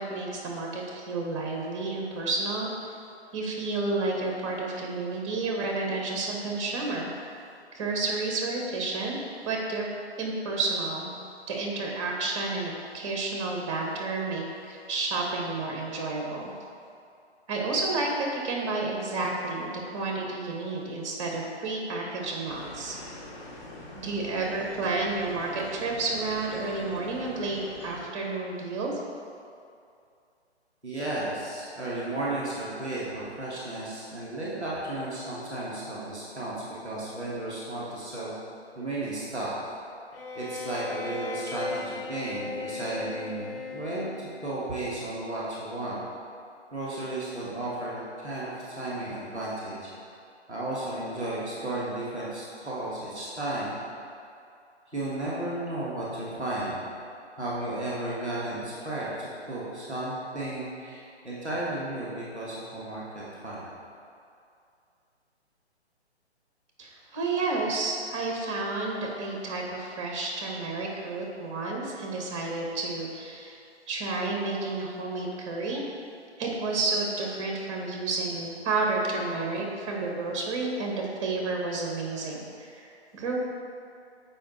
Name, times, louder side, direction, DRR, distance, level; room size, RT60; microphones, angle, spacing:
voice 1, 0.0-2.7 3.3-7.1 7.7-9.2 9.4-9.8 10.2-11.1 11.5-16.5 17.5-22.9 23.9-28.9 66.8-73.6 73.9-75.8 76.4-83.4, right 3 dB, 25° right, -1 dB, 1.0 m, -31 dB
sound 1, 22.5-28.0, left 1 dB, 25° left, 0.9 m, -44 dB
voice 2, 30.8-36.5 36.8-38.3 38.8-39.5 40.3-44.1 44.4-46.0 46.7-49.8 50.5-53.8 54.9-56.8 57.4-63.6, right 2 dB, ahead, -20 dB, 0.4 m, -34 dB
Bowed string instrument, 40.1-44.6, left 4 dB, 55° left, 0.6 m, -37 dB
6.9 x 4.9 x 3.8 m, 2.5 s
figure-of-eight pair, 145°, 34 cm